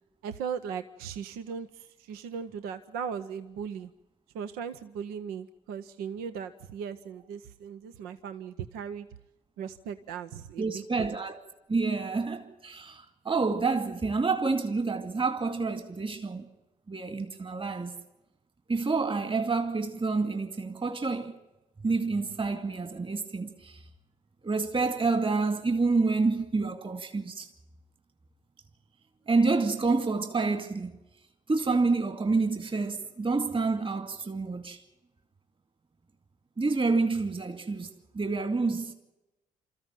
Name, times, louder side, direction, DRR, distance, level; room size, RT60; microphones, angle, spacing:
voice 1, 0.2-3.9 4.3-9.1 9.6-11.2, right 7 dB, 80° right, 0.8 m, -38 dB
voice 2, 10.6-11.4 11.7-16.5 16.9-18.0 18.7-21.3 21.8-23.8 24.4-27.5 29.3-30.9 31.5-34.8 36.6-38.9, right 3 dB, 35° right, 2.3 m, -28 dB
27.0 x 14.0 x 9.1 m
hypercardioid pair, 55°, 15 cm